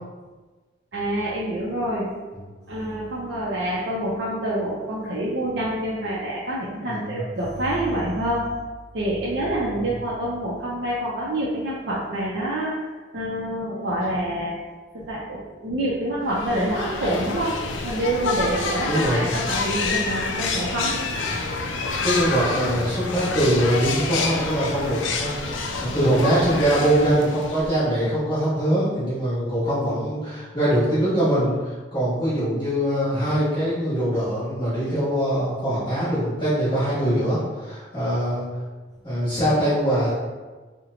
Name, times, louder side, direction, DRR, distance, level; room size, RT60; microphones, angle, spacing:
voice 1, 0.9-2.1 2.7-8.6 8.9-14.6 14.9-17.5 17.8-20.9, right 1 dB, 60° right, -6 dB, 0.5 m, -27 dB
voice 2, 6.9-7.2 9.7-9.9 18.9-19.3 22.0-38.5 39.0-40.1, right 1 dB, 25° left, -12 dB, 1.1 m, -23 dB
sound 1, 16.3-27.9, left 3 dB, 80° left, 0.4 m, -28 dB
2.8 x 2.1 x 3.8 m, 1.3 s
head